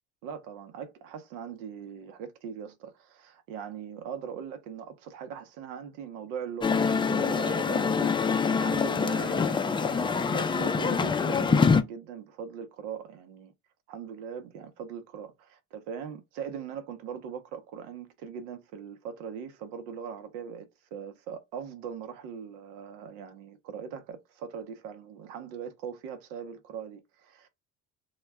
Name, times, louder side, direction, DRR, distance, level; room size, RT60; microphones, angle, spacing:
voice 1, 0.2-13.5 13.9-27.5, right 7 dB, 80° right, 0.8 m, -40 dB
sound 1, 6.6-11.8, left 5 dB, 15° left, 0.3 m, -25 dB
2.3 x 2.1 x 3.3 m
supercardioid pair, 75°, 37 cm